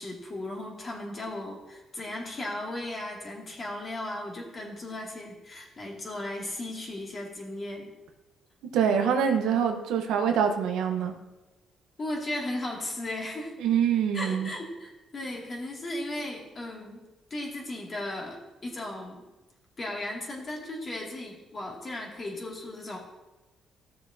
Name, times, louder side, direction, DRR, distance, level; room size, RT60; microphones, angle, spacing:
voice 1, 0.0-7.9 12.0-13.6 14.1-17.0 17.3-19.2 19.8-23.0, left 1 dB, 35° left, -1 dB, 2.3 m, -36 dB
voice 2, 8.7-11.1 13.6-14.5, right 7 dB, 90° right, 5 dB, 1.0 m, -25 dB
14.0 x 6.8 x 2.7 m, 1.1 s
cardioid pair, 90°, 0 cm